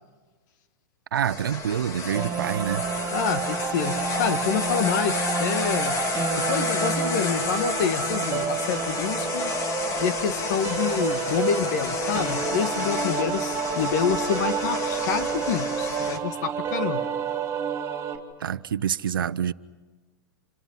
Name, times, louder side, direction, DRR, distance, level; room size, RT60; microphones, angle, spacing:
sound 1, 1.1-16.2, left 4 dB, 30° left, 2.3 m, -31 dB
voice 1, 1.1-2.8 18.4-19.5, right 9 dB, 85° right, 0.8 m, -26 dB
sound 2, 2.1-18.2, right 7 dB, 25° right, 3.7 m, -29 dB
voice 2, 3.1-5.9 6.4-9.5 10.0-17.1, left 7 dB, 55° left, 1.8 m, -27 dB
28.5 x 26.5 x 5.7 m
hypercardioid pair, 125°, 11 cm